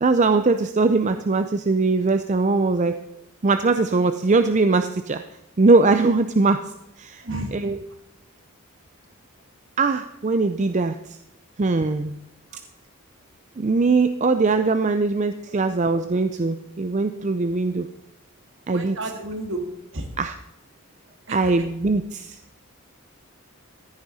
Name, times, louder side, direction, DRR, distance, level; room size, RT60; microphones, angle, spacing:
voice 1, 0.0-3.0 3.4-5.2 5.6-6.7 7.0-7.2 7.5-7.8 9.8-11.2 11.6-12.2 13.6-17.9 18.7-19.0 20.2-20.4 21.3-22.4, right 3 dB, 35° right, 9 dB, 0.5 m, -21 dB
voice 2, 7.2-7.7 18.6-19.6 19.9-20.1 21.3-21.5, right 2 dB, 60° right, 5 dB, 2.0 m, -32 dB
15.0 x 9.9 x 4.1 m, 0.86 s
head